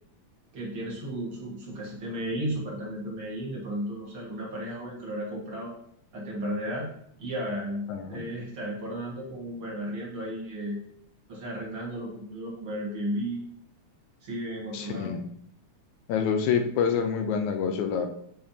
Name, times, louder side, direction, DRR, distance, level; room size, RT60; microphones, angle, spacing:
voice 1, 0.5-5.7 6.1-6.9 7.2-10.8 11.3-13.4 14.2-15.2, equal, 50° right, -4 dB, 2.3 m, -34 dB
voice 2, 7.9-8.2 14.7-15.3 16.1-18.1, left 6 dB, 80° left, 6 dB, 2.1 m, -27 dB
8.6 x 5.5 x 2.8 m, 0.67 s
omnidirectional pair, 3.4 m